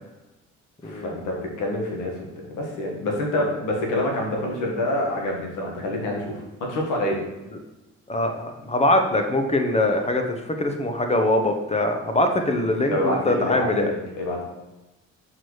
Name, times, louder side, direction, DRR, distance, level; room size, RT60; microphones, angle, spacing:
voice 1, 0.8-2.1 2.5-7.2 12.9-14.4, left 1 dB, 85° left, 0 dB, 1.9 m, -27 dB
voice 2, 8.1-13.9, left 1 dB, 20° left, 5 dB, 1.0 m, -22 dB
6.1 x 4.7 x 4.8 m, 1.0 s
cardioid pair, 90°, 30 cm